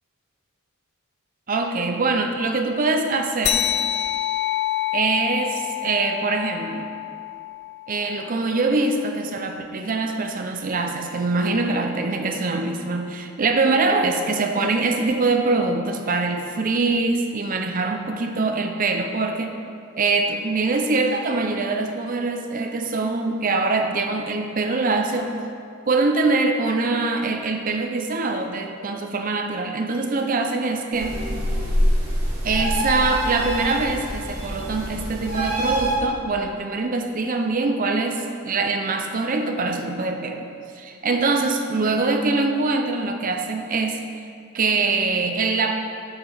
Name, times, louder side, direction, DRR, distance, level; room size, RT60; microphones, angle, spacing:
voice 1, 1.5-3.7 4.9-6.9 7.9-19.5 19.9-25.3 25.9-31.2 32.4-40.5 40.8-44.1 44.5-45.7, right 3 dB, 35° right, 4 dB, 0.5 m, -23 dB
sound 1, 3.4-8.4, left 12 dB, 50° left, 0.4 m, -27 dB
sound 2, 30.9-35.9, equal, 75° right, 1.8 m, -25 dB
7.7 x 5.0 x 5.5 m, 2.4 s
head